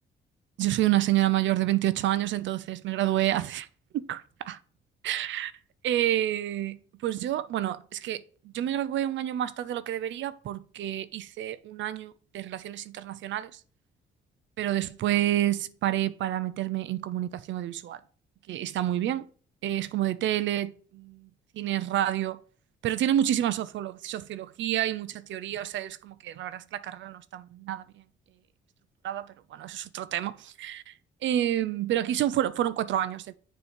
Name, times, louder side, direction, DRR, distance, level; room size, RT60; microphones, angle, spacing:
voice 1, 0.6-3.7 3.9-4.6 5.0-5.5 5.8-13.6 14.6-18.0 18.5-19.3 19.6-21.3 21.5-22.4 22.8-27.8 29.0-30.9 31.2-33.3, right 12 dB, 70° right, 0.5 m, -29 dB
7.0 x 3.1 x 5.1 m
cardioid pair, 90°, 20 cm